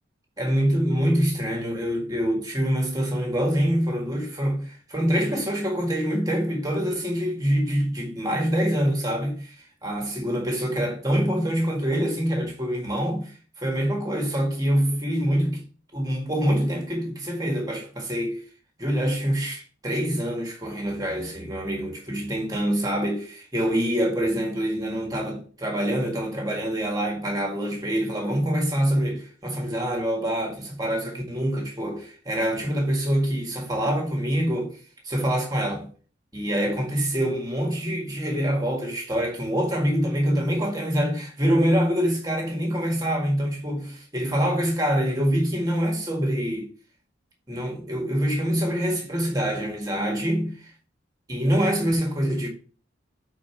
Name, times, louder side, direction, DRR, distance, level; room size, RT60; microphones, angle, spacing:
voice 1, 0.4-9.5 9.8-15.6 15.9-18.4 18.8-34.8 35.0-35.9 36.3-46.7 47.5-50.7 51.3-52.5, equal, 20° right, 1.8 m, -25 dB
6.7 x 4.5 x 4.5 m
head